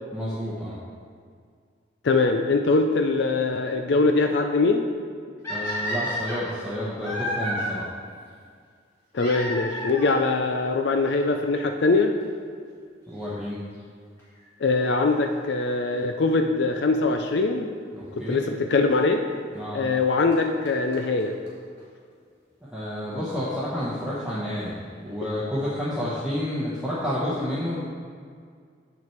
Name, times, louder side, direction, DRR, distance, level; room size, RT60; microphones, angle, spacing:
voice 1, 0.1-0.8 5.5-7.8 13.1-13.6 17.9-18.4 19.5-19.8 22.7-24.7 25.0-27.8, equal, 5° right, -10 dB, 1.0 m, -30 dB
voice 2, 2.0-4.8 9.1-12.1 14.6-17.7 18.2-19.2 19.7-21.3, left 3 dB, 60° left, 5 dB, 0.4 m, -22 dB
sound 1, 5.4-7.7 9.1-10.2 11.1-11.2 11.9-12.0 12.2-12.3 14.2-14.4 17.3-17.4 18.4-18.5 19.9-20.0 20.3-20.4 20.6-20.7 20.9-21.0 21.2-21.3 21.5-21.6 21.8-21.9, equal, 15° left, 2.0 m, -31 dB
7.6 x 5.9 x 4.5 m, 2.1 s
head